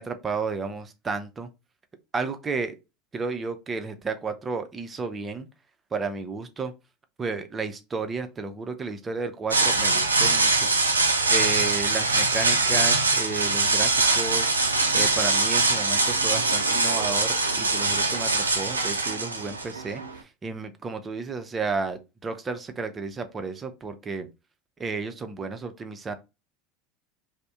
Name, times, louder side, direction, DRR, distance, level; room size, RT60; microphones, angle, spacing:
voice 1, 0.0-1.5 2.1-2.7 3.1-5.5 5.9-6.7 7.2-10.7 11.3-14.5 14.9-24.3 24.8-26.1, right 4 dB, 25° right, 0.5 m, -32 dB
sound 1, 9.5-20.2, right 3 dB, 85° right, 0.3 m, -23 dB
2.6 x 2.1 x 3.4 m
figure-of-eight pair, 75°, 0 cm